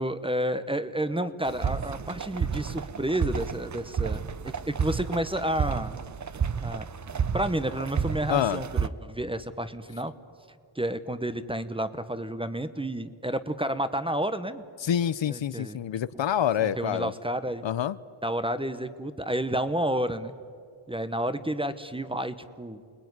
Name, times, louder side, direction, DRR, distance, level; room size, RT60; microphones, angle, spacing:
voice 1, 0.0-5.9 6.6-6.9 7.3-10.1 10.7-14.6 15.3-15.8 16.1-16.2 16.6-17.6 18.2-20.3 20.9-22.8, right 1 dB, 10° right, 12 dB, 0.9 m, -30 dB
sound 1, 1.4-8.9, right 6 dB, 35° right, 0.7 m, -31 dB
voice 2, 8.3-8.6 14.8-17.1 17.6-18.0, left 9 dB, 65° left, 16 dB, 0.7 m, -27 dB
29.0 x 21.5 x 9.6 m, 2.2 s
wide cardioid pair, 155°, 49 cm